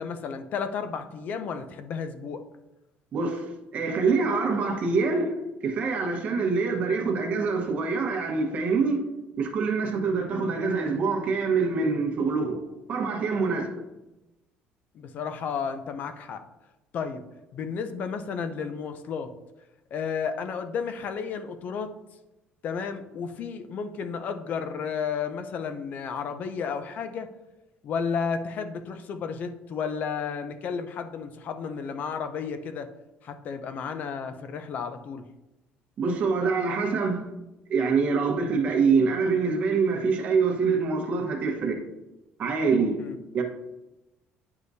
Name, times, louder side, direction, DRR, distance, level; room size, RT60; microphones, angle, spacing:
voice 1, 0.0-2.4 14.9-16.4 16.9-17.2 17.5-19.3 19.9-21.9 22.6-27.3 27.8-32.9 33.2-35.3 43.0-43.2, left 6 dB, 50° left, 0.6 m, -32 dB
voice 2, 3.1-3.4 3.7-5.3 5.6-9.0 9.4-12.6 12.9-13.7 36.0-37.3 37.7-41.8 42.4-43.0 43.3-43.4, right 4 dB, 40° right, 1.2 m, -25 dB
9.6 x 4.8 x 2.7 m
cardioid pair, 150°, 4 cm